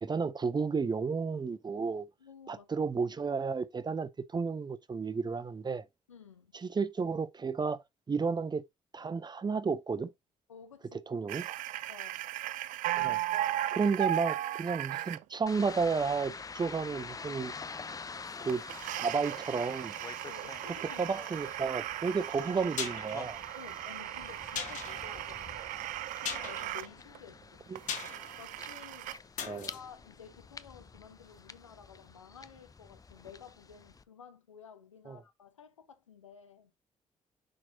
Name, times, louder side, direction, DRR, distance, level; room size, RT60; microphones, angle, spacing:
voice 1, 0.0-2.1 2.5-5.8 6.6-8.6 8.9-10.1 11.1-11.5 13.0-13.2 13.7-17.5 18.4-18.6 19.0-19.9 21.0-23.4 27.7-27.8 29.4-29.7 35.1-35.2, right 5 dB, 25° right, 0.8 m, -32 dB
voice 2, 2.2-2.9 6.1-6.5 10.5-11.0 11.9-12.3 13.0-13.2 20.2-21.0 23.5-25.6 26.2-27.7 28.4-29.2 29.4-36.7, left 7 dB, 85° left, 0.8 m, -53 dB
sound 1, 11.3-15.2 18.5-26.9 27.2-27.3 27.8-29.2, right 14 dB, 55° right, 0.4 m, -37 dB
sound 2, 15.5-34.0, left 4 dB, 20° left, 0.6 m, -47 dB
sound 3, 22.7-31.2 31.5-31.6, left 7 dB, 55° left, 1.8 m, -43 dB
6.4 x 5.9 x 2.7 m
figure-of-eight pair, 45°, 16 cm